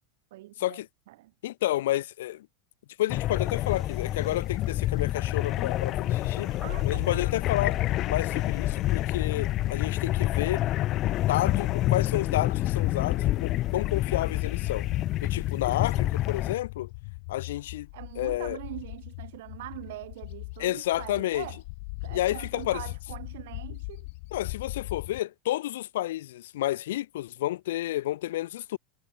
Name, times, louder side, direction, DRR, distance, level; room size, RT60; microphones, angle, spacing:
voice 1, 0.3-0.8 1.1-1.3 6.4-7.3 17.9-21.6 22.0-24.1, right 17 dB, 75° right, 1.4 m, -42 dB
voice 2, 1.4-2.5 3.0-6.5 6.8-7.8 8.1-10.6 11.3-14.9 15.2-16.9 17.3-17.9 18.2-18.6 20.6-21.5 22.1-22.8 24.3-28.8, left 14 dB, 85° left, 0.7 m, -30 dB
sound 1, 3.1-16.5, left 15 dB, 40° left, 0.6 m, -28 dB
sound 2, 3.7-9.8, right 12 dB, 35° right, 4.0 m, -54 dB
Bird, 6.1-10.6 11.0-25.2, left 28 dB, 65° left, 1.0 m, -39 dB
supercardioid pair, 135°, 0 cm